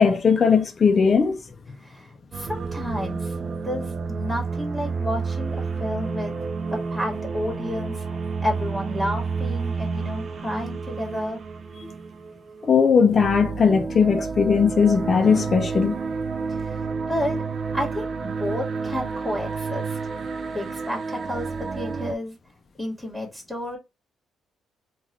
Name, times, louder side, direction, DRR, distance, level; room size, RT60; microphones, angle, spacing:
voice 1, 0.0-1.4 11.8-11.9 12.6-16.0, left 6 dB, 40° left, 0.7 m, -19 dB
voice 2, 1.8-3.3 3.6-6.3 6.7-8.0 8.4-11.4 16.5-17.4 17.7-20.0 20.5-22.4 22.8-23.8, left 1 dB, ahead, 1.6 m, -31 dB
sound 1, 2.3-22.2, right 4 dB, 50° right, 0.4 m, -30 dB
3.8 x 2.4 x 3.0 m
cardioid pair, 90°, 0 cm